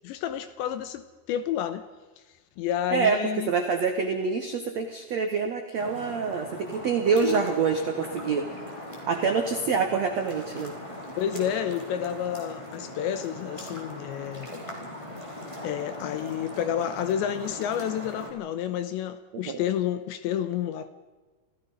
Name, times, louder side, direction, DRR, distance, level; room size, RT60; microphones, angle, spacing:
voice 1, 0.0-1.9 2.6-3.5 11.2-14.5 15.6-20.9, left 10 dB, 75° left, 3.1 m, -30 dB
voice 2, 3.5-8.4 9.1-10.7 19.4-19.6, right 5 dB, 80° right, 1.5 m, -26 dB
sound 1, 5.8-18.3, equal, 5° left, 4.0 m, -39 dB
28.0 x 17.0 x 5.5 m
omnidirectional pair, 5.6 m